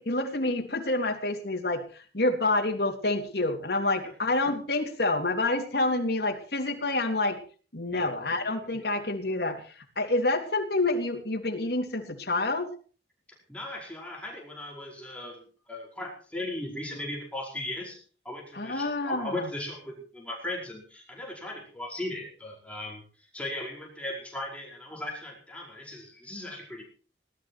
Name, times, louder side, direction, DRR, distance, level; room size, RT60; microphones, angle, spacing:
voice 1, 0.0-7.4 7.7-9.6 10.0-12.7 18.5-19.5, left 2 dB, 60° left, 2 dB, 3.4 m, -28 dB
voice 2, 13.5-18.0 18.2-26.8, left 1 dB, 5° left, -2 dB, 4.9 m, -38 dB
19.0 x 12.5 x 4.7 m, 0.40 s
head